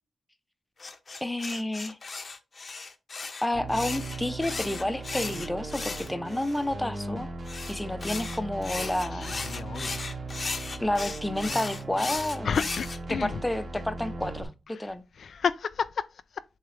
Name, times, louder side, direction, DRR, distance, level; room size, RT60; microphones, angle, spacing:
sound 1, 0.8-6.6 7.4-13.0, left 4 dB, 40° left, 0.8 m, -36 dB
voice 1, 1.2-2.0 3.4-7.3 7.7-9.3 10.8-12.5 13.1-14.5 14.8-15.0, left 1 dB, 10° left, 0.7 m, -30 dB
sound 2, 3.5-14.4, right 2 dB, 45° right, 1.9 m, -38 dB
voice 2, 9.1-10.2 12.4-13.4 14.7-16.4, left 6 dB, 65° left, 0.4 m, -32 dB
7.7 x 3.6 x 3.3 m
wide cardioid pair, 120°, 0 cm